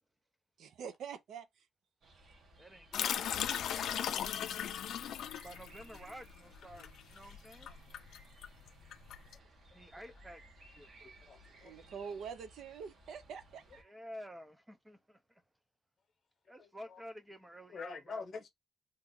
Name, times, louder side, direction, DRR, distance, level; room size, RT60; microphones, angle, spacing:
voice 1, 0.6-1.7 11.6-13.9, right 7 dB, 75° right, 0.5 m, -45 dB
sound 1, 2.0-13.8, right 1 dB, 55° right, 1.0 m, -60 dB
voice 2, 2.6-3.8 5.4-7.8 9.7-10.4 10.7-10.9 13.8-15.4 16.5-18.4, equal, 10° right, 0.4 m, -51 dB
sound 2, 2.9-9.3, left 9 dB, 75° left, 0.3 m, -37 dB
voice 3, 11.0-11.7 12.0-12.1 16.6-17.0 17.7-18.5, left 5 dB, 45° left, 0.9 m, -46 dB
2.9 x 2.4 x 3.5 m
cardioid pair, 155°, 0 cm